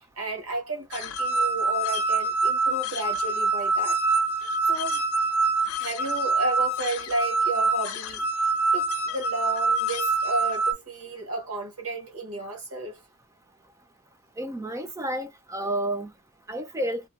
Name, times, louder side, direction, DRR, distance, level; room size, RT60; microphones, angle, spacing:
voice 1, 0.2-4.0 4.6-5.0 5.8-13.0, right 2 dB, 70° right, 1.3 m, -33 dB
sound 1, 0.9-10.7, right 3 dB, 70° left, 0.6 m, -25 dB
voice 2, 14.4-16.1 16.5-17.0, right 1 dB, 15° right, 0.4 m, -30 dB
2.9 x 2.1 x 2.4 m
head